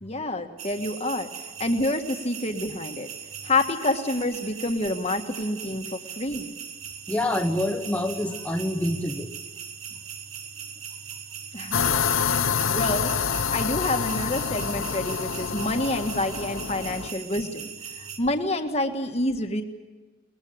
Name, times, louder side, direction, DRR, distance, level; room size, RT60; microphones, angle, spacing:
voice 1, 0.0-3.1 3.4-6.5 11.5-11.8 12.3-17.7 17.9-19.6, left 2 dB, 30° left, 5 dB, 1.6 m, -28 dB
sound 1, 0.6-18.2, right 8 dB, 85° right, 2.2 m, -40 dB
voice 2, 7.1-9.4, left 1 dB, 5° left, 4 dB, 1.1 m, -26 dB
sound 2, 11.7-17.1, left 7 dB, 75° left, 1.0 m, -27 dB
22.5 x 20.0 x 8.8 m, 1.3 s
head